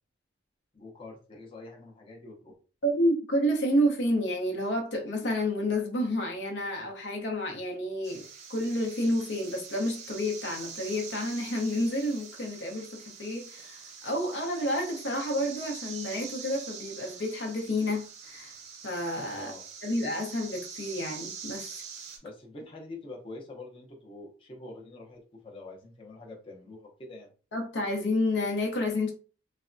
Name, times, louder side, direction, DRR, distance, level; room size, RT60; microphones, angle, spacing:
voice 1, 0.7-2.5 19.4-19.6 22.2-27.3, left 2 dB, 30° left, 0.6 m, -45 dB
voice 2, 2.8-18.5 18.8-19.5 19.8-21.8 27.5-29.1, left 1 dB, 70° left, 0.7 m, -30 dB
sound 1, 8.0-22.2, right 6 dB, 35° right, 0.5 m, -44 dB
3.3 x 2.1 x 2.5 m
head